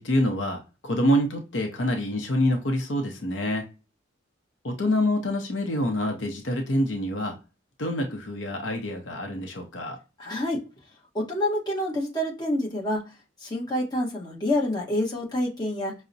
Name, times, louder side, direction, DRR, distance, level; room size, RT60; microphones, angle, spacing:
voice 1, 0.0-3.6 4.6-7.3 7.8-10.0, left 1 dB, 60° left, 4 dB, 0.6 m, -26 dB
voice 2, 10.2-10.6 11.1-13.1 13.4-15.9, left 1 dB, 20° left, -3 dB, 1.0 m, -27 dB
5.6 x 2.0 x 2.6 m, 0.29 s
head